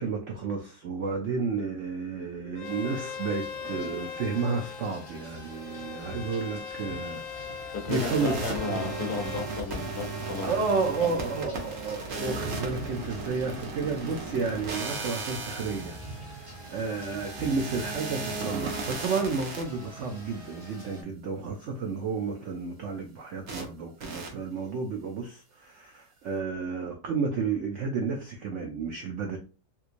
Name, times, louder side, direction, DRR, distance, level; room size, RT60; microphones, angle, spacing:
voice 1, 0.0-8.4 8.7-8.9 10.4-16.0 16.2-29.4, right 4 dB, 85° right, 0.6 m, -31 dB
Bowed string instrument, 2.6-9.5, left 7 dB, 85° left, 0.7 m, -40 dB
sound 1, 2.6-21.0, right 2 dB, 20° right, 1.0 m, -45 dB
voice 2, 7.7-10.5 11.0-11.2, left 4 dB, 65° left, 1.2 m, -34 dB
sound 2, 7.9-19.6 23.5-23.6 24.0-24.3, right 3 dB, 60° right, 1.2 m, -36 dB
3.5 x 3.0 x 2.5 m
omnidirectional pair, 1.9 m